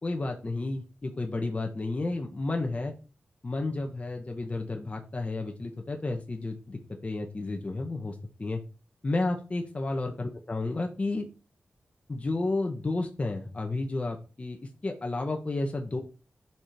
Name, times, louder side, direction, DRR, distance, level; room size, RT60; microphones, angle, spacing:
voice 1, 0.0-2.9 3.4-8.6 9.0-11.3 12.1-14.6 14.8-16.0, left 2 dB, 35° left, 2 dB, 1.8 m, -31 dB
11.5 x 5.3 x 4.7 m, 0.32 s
wide cardioid pair, 85°, 4 cm